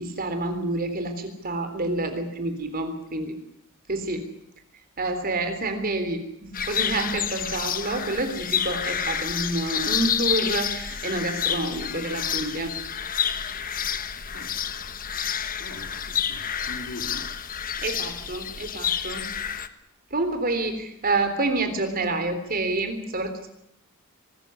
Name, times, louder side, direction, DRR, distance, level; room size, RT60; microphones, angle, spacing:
voice 1, 0.0-3.3 3.9-4.3 5.0-12.7 17.8-19.3 20.1-23.5, right 2 dB, 45° right, 8 dB, 3.5 m, -28 dB
sound 1, 6.5-19.7, left 8 dB, 40° left, 1.2 m, -29 dB
voice 2, 15.6-17.3, left 2 dB, 60° left, 4 dB, 3.9 m, -41 dB
24.0 x 14.0 x 9.9 m, 0.80 s
head